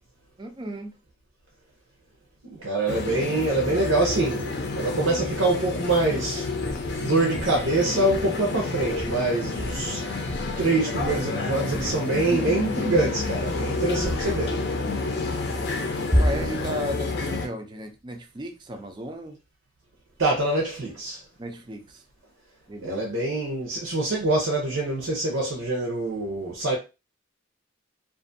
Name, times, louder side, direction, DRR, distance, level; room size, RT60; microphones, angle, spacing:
voice 1, 0.4-0.9 16.2-19.4 21.4-22.0 22.7-23.0, equal, 25° right, 0.4 m, -35 dB
voice 2, 2.4-6.5 7.0-10.0 10.6-14.6 20.2-21.2 22.8-26.8, right 2 dB, 85° right, 0.7 m, -25 dB
sound 1, 2.9-17.5, left 3 dB, 55° left, 0.5 m, -29 dB
sound 2, 6.6-7.0 7.4-7.7 8.1-8.4 8.8-9.3 9.6-9.9 10.3-10.7 11.0-11.4 11.7-12.0 12.5-12.8 13.2-13.6 14.0-14.4 16.1-16.7, equal, 10° left, 0.7 m, -29 dB
2.5 x 2.4 x 2.6 m
head